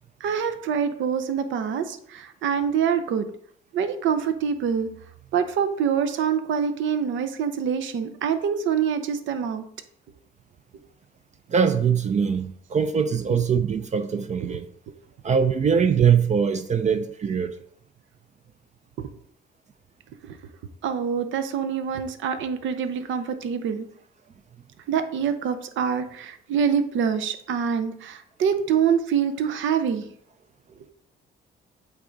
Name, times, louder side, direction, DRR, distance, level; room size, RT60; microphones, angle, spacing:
voice 1, 0.2-3.3 3.7-4.9 5.3-9.6 14.4-14.6 20.2-20.4 20.8-23.9 24.9-30.1, right 7 dB, 75° right, 0.7 m, -25 dB
voice 2, 11.5-14.7 15.2-17.6, right 7 dB, 35° right, 0.4 m, -22 dB
8.1 x 3.6 x 3.9 m
cardioid pair, 90°, 20 cm